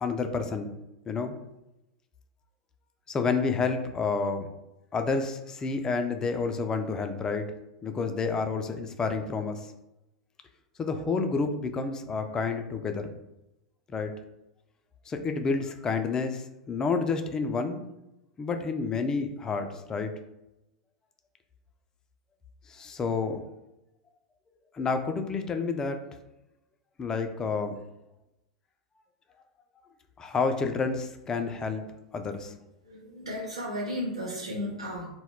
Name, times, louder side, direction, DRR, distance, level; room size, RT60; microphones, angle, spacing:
voice 1, 0.0-0.7 1.1-1.3 3.1-4.5 4.9-7.5 7.8-9.7 10.8-13.1 13.9-14.1 15.1-17.9 18.4-20.1 22.7-23.4 24.7-26.1 27.0-27.8 30.2-31.9 32.1-32.5, left 4 dB, 20° left, 6 dB, 0.3 m, -29 dB
voice 2, 32.8-35.1, left 1 dB, 80° right, -6 dB, 0.8 m, -35 dB
2.2 x 2.1 x 3.6 m, 0.91 s
figure-of-eight pair, 90°, 3 cm